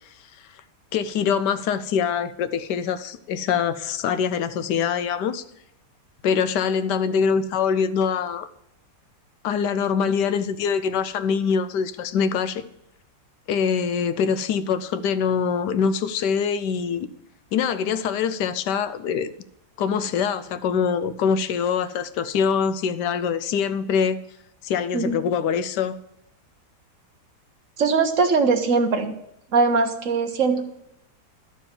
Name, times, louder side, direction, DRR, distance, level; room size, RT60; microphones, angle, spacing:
voice 1, 0.9-5.4 6.2-8.5 9.4-12.6 13.5-17.1 17.5-19.3 19.8-24.2 24.6-26.0, left 6 dB, 85° left, 12 dB, 1.3 m, -24 dB
voice 2, 27.8-29.1 29.5-30.8, right 4 dB, 55° right, 6 dB, 1.3 m, -21 dB
12.5 x 4.6 x 7.2 m, 0.80 s
omnidirectional pair, 1.8 m